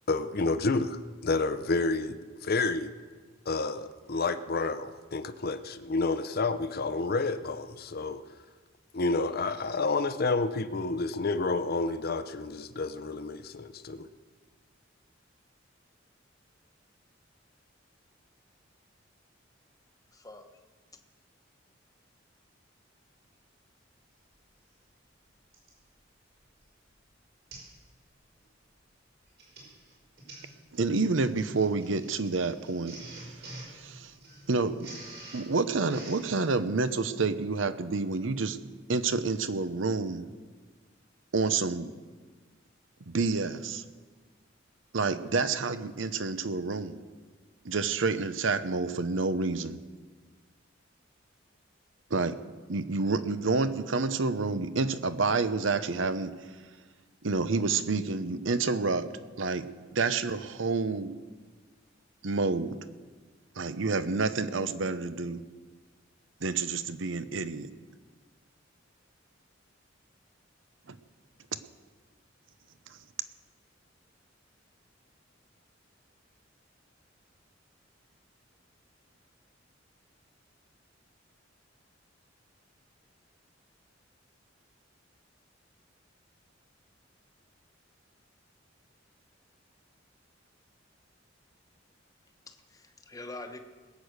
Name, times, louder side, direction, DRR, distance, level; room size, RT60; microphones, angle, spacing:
voice 1, 0.1-2.9 3.5-8.2 8.9-14.1, left 3 dB, 55° left, 0.7 m, -30 dB
voice 2, 20.1-20.5 92.5-93.6, left 2 dB, 20° left, 1.1 m, -44 dB
Printer, 24.3-24.4 25.5-25.8 26.4-26.6 26.9-27.0 27.5-27.8 28.1-28.4 29.2-36.4, right 2 dB, 55° right, 5.3 m, -48 dB
voice 3, 30.7-33.4 33.7-34.1 34.5-34.9 35.3-38.6 38.9-40.3 41.3-41.9 43.1-43.8 44.9-47.0 47.6-49.8 52.1-52.4 52.7-56.4 57.2-59.1 59.4-61.2 62.2-62.8 63.6-65.4 66.4-67.7 70.9-71.0, right 4 dB, 75° right, 0.8 m, -29 dB
21.0 x 8.4 x 6.5 m
head